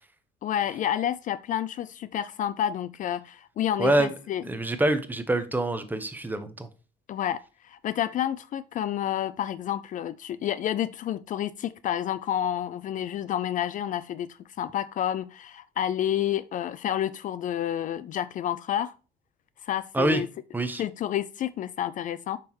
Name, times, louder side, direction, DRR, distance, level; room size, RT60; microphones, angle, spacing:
voice 1, 0.4-4.4 7.1-18.9 19.6-20.3 20.8-22.4, left 10 dB, 50° left, 0.4 m, -29 dB
voice 2, 3.8-4.1 4.4-6.7 19.9-20.2 20.5-20.8, right 1 dB, 10° right, 1.0 m, -25 dB
6.9 x 5.9 x 3.0 m
cardioid pair, 110°, 17 cm